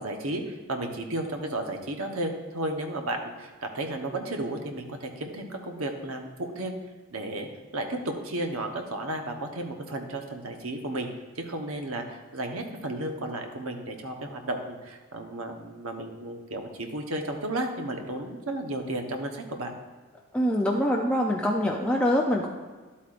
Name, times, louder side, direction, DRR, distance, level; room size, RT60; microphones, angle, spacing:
voice 1, 0.0-6.7 7.1-7.5 7.7-11.1 11.4-19.7, right 1 dB, 70° right, 4 dB, 1.1 m, -33 dB
voice 2, 20.3-22.5, equal, 5° left, -1 dB, 0.5 m, -24 dB
11.5 x 8.5 x 2.5 m, 1.4 s
head